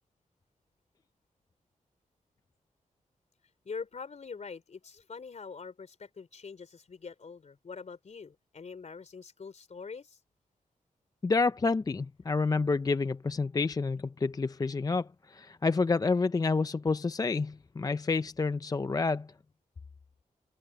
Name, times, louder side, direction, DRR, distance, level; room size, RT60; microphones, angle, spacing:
voice 1, 3.6-10.2, left 5 dB, 55° left, 3.7 m, -44 dB
voice 2, 11.2-19.3, left 4 dB, 25° left, 0.5 m, -29 dB
cardioid pair, 65°, 14 cm